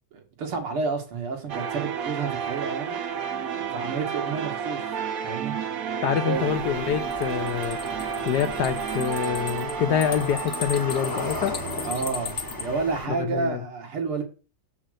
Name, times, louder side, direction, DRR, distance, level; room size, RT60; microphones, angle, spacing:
voice 1, 0.1-3.0 3.7-4.8 5.2-5.6 6.2-6.5 11.8-14.2, right 4 dB, 80° right, 2.7 m, -30 dB
sound 1, 1.5-12.4, right 7 dB, 55° right, 1.0 m, -32 dB
voice 2, 6.0-7.8 8.2-11.6 13.1-13.6, left 8 dB, 65° left, 1.1 m, -26 dB
sound 2, 6.3-13.1, left 1 dB, 15° left, 0.8 m, -36 dB
sound 3, 7.1-12.6, left 5 dB, 45° left, 1.1 m, -37 dB
7.4 x 5.6 x 6.4 m
omnidirectional pair, 2.3 m